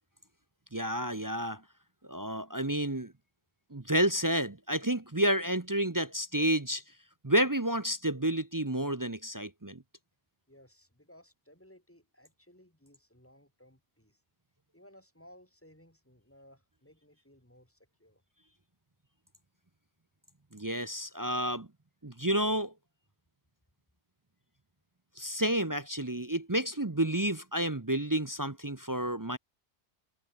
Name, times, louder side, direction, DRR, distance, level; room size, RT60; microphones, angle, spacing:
voice 1, 0.7-1.6 2.0-3.1 3.7-6.8 7.2-9.8 20.5-21.7 22.0-22.7 25.2-29.4, right 1 dB, 20° right, 0.8 m, -30 dB
voice 2, 10.5-14.2 14.7-18.2, left 1 dB, 10° left, 6.7 m, -59 dB
omnidirectional pair, 1.1 m